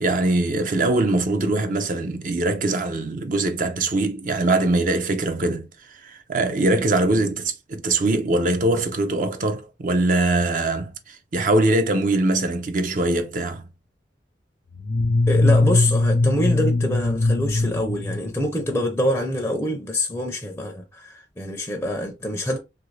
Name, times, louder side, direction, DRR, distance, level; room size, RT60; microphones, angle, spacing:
voice 1, 0.0-13.6, right 2 dB, 50° right, 0.5 m, -22 dB
sound 1, 14.7-18.8, left 2 dB, 90° left, 0.6 m, -21 dB
voice 2, 15.3-22.6, left 1 dB, 10° left, 0.5 m, -25 dB
3.0 x 2.5 x 3.1 m
head